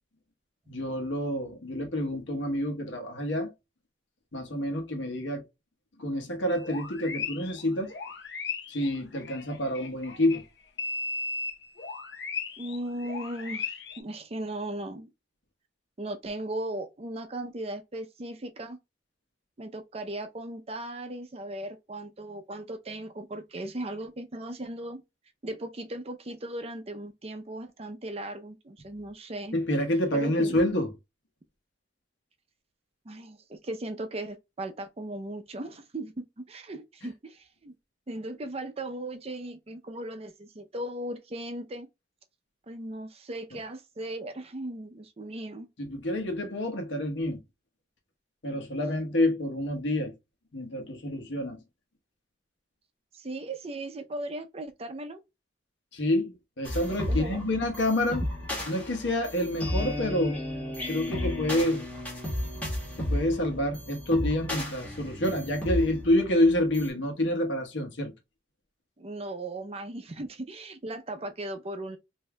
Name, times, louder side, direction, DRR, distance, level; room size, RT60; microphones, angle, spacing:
voice 1, 0.7-3.5 4.3-5.4 6.0-7.9 8.7-10.4 29.5-30.9 45.8-47.4 48.4-50.1 50.5-51.6 55.9-58.2 58.7-60.4 60.9-61.8 63.0-68.1, left 1 dB, 80° left, 1.1 m, -28 dB
sound 1, 6.5-10.4 10.8-14.0, left 4 dB, 65° left, 0.7 m, -36 dB
voice 2, 12.6-15.1 16.0-18.8 19.6-25.0 25.4-29.6 30.1-30.6 33.1-37.7 38.1-41.9 42.7-45.7 53.1-55.2 57.1-57.4 69.0-72.0, right 1 dB, 35° right, 0.5 m, -37 dB
sound 2, 56.6-66.9, left 1 dB, 10° left, 1.3 m, -33 dB
5.3 x 2.7 x 2.2 m
head